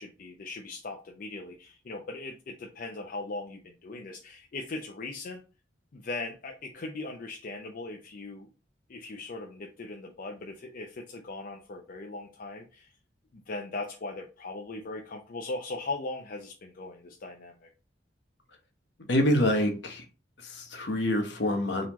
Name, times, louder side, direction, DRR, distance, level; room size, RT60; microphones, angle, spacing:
voice 1, 0.0-5.4 5.9-8.5 8.9-12.9 13.3-17.7, left 2 dB, 50° left, 2 dB, 0.5 m, -39 dB
voice 2, 19.1-20.0 20.4-21.9, left 1 dB, 65° left, 4 dB, 0.9 m, -26 dB
4.0 x 2.9 x 3.0 m, 0.33 s
head